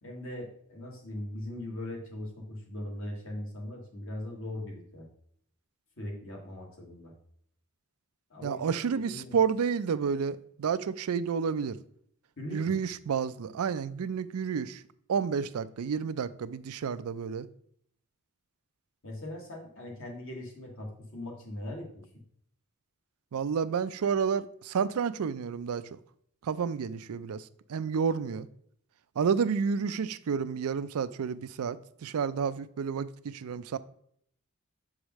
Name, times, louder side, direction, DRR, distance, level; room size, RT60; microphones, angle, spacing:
voice 1, 0.0-5.1 6.0-7.1 8.3-9.4 12.4-12.8 19.0-22.2, left 1 dB, 60° left, 1.7 m, -40 dB
voice 2, 8.4-11.8 12.5-14.8 15.1-17.5 23.3-25.8 26.4-27.4 27.7-28.5 29.2-33.8, right 6 dB, 80° right, 0.4 m, -30 dB
7.3 x 4.9 x 3.0 m
head